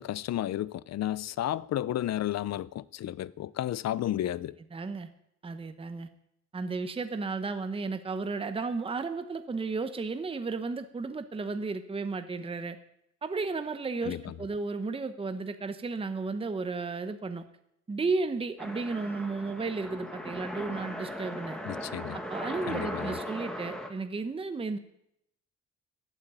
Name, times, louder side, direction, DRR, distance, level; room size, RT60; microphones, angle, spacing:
voice 1, 0.0-4.6 14.0-14.3 21.7-22.2 22.7-23.2, left 12 dB, 65° left, 0.6 m, -32 dB
voice 2, 4.7-5.1 5.4-6.1 6.5-12.8 13.2-17.4 17.9-21.6 22.1-24.8, right 4 dB, 20° right, 0.8 m, -33 dB
sound 1, 18.6-23.9, equal, ahead, 1.8 m, -38 dB
14.5 x 9.2 x 9.2 m
wide cardioid pair, 150°, 29 cm